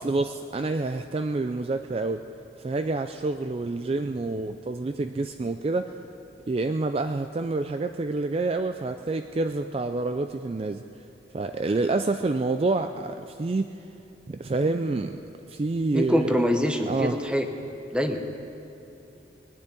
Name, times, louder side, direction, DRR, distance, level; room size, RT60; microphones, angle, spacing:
voice 1, 0.0-2.2 2.6-5.9 6.5-10.8 11.3-13.7 14.3-15.2 15.5-16.4 16.9-17.2, right 3 dB, 30° right, 8 dB, 0.3 m, -28 dB
voice 2, 15.9-17.5 17.9-18.2, equal, 5° right, 5 dB, 0.8 m, -24 dB
20.0 x 7.1 x 9.7 m, 2.8 s
head